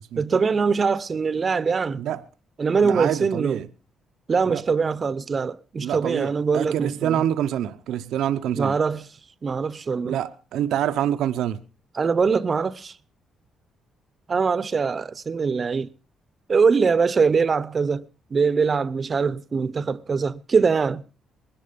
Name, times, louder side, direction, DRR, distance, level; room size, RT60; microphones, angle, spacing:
voice 1, 0.2-2.0 2.6-3.6 4.3-7.2 8.6-9.1 9.4-10.2 11.9-12.9 14.3-15.9 16.5-18.0 18.3-21.0, right 5 dB, 40° right, 0.8 m, -22 dB
voice 2, 2.8-3.7 4.5-4.6 5.8-8.7 10.0-11.6, right 10 dB, 80° right, 0.7 m, -26 dB
20.0 x 11.5 x 5.1 m
cardioid pair, 90°, 0 cm